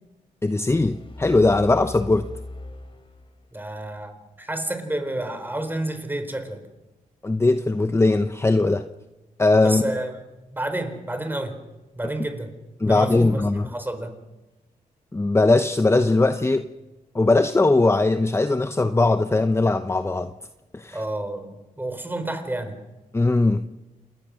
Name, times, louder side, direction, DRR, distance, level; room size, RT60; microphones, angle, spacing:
voice 1, 0.4-2.3 7.2-8.9 9.4-9.9 12.8-13.7 15.1-16.7 17.1-20.3 20.7-21.0 23.1-23.7, left 2 dB, 20° left, 10 dB, 0.8 m, -20 dB
sound 1, 0.7-3.7, left 2 dB, 35° left, 4.1 m, -39 dB
voice 2, 3.5-6.6 9.6-10.2 10.5-11.6 12.0-12.5 12.8-14.2 20.9-22.8, right 1 dB, 15° right, 8 dB, 4.2 m, -30 dB
28.0 x 21.0 x 6.4 m, 1.1 s
cardioid pair, 75°, 14 cm